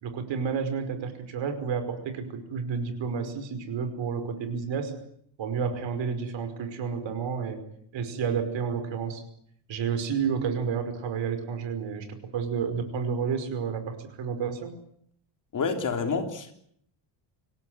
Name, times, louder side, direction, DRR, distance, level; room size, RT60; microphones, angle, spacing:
voice 1, 0.0-5.0 5.4-7.6 7.9-9.2 9.7-14.7, right 6 dB, 60° right, 5.3 m, -30 dB
voice 2, 15.5-16.5, left 5 dB, 40° left, 3.5 m, -28 dB
26.5 x 17.0 x 9.6 m
cardioid pair, 145°, 50 cm